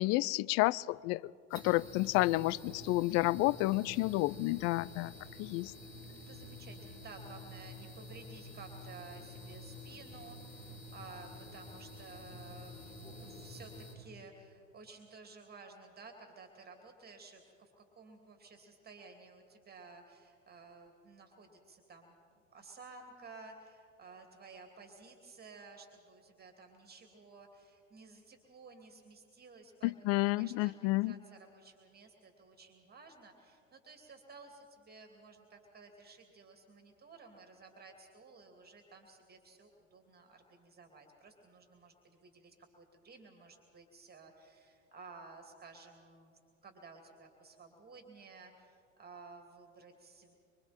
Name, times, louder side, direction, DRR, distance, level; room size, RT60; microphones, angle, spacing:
voice 1, 0.0-5.1 5.4-5.7 29.8-31.1, left 20 dB, 40° left, 22 dB, 0.4 m, -30 dB
sound 1, 1.5-13.9, left 1 dB, 90° left, 5.2 m, -49 dB
voice 2, 5.9-50.3, right 4 dB, 25° right, 4 dB, 2.7 m, -55 dB
25.0 x 24.5 x 4.4 m, 2.3 s
hypercardioid pair, 85°, 39 cm